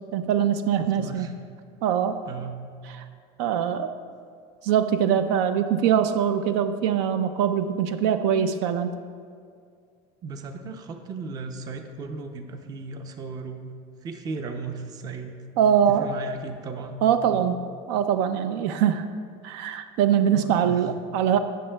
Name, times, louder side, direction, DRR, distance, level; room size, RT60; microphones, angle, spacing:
voice 1, 0.1-1.3 1.8-2.2 2.9-3.0 3.4-4.0 4.6-9.0 15.6-16.1 17.0-17.6 17.9-19.1 19.4-21.4, right 8 dB, 80° right, 10 dB, 0.5 m, -23 dB
voice 2, 0.8-1.3 2.3-2.6 10.2-13.7 14.0-15.4 15.9-17.0 17.3-17.5 20.3-20.8, right 4 dB, 25° right, 6 dB, 0.5 m, -36 dB
17.5 x 6.4 x 2.3 m, 2.2 s
cardioid pair, 170°, 14 cm